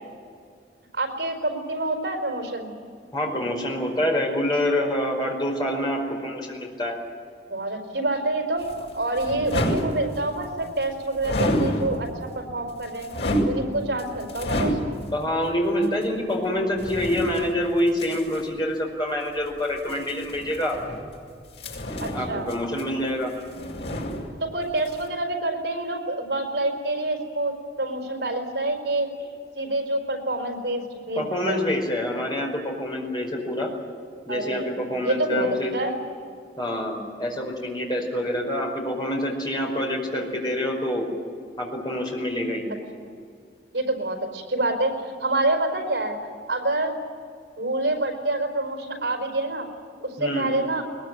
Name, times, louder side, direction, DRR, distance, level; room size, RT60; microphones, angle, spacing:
voice 1, 0.9-2.7 7.5-13.1 13.4-15.0 22.0-22.5 24.4-29.3 29.6-31.6 34.3-35.5 35.7-35.9 43.7-46.2 46.5-47.0 47.6-49.7 50.0-50.8, right 2 dB, 75° right, 4 dB, 4.6 m, -27 dB
voice 2, 3.1-7.0 15.1-20.8 22.1-23.3 31.1-33.7 34.2-35.7 36.6-41.1 41.6-42.7 50.2-50.5, left 1 dB, 25° left, 0 dB, 5.1 m, -26 dB
sound 1, 8.6-10.5 11.2-12.3 12.7-15.2 15.8-15.9 16.7-18.4 19.8-21.2 21.5-23.1 23.4-24.6 24.8-25.0, equal, 75° left, 6.8 m, -29 dB
21.5 x 21.0 x 9.5 m, 2.2 s
head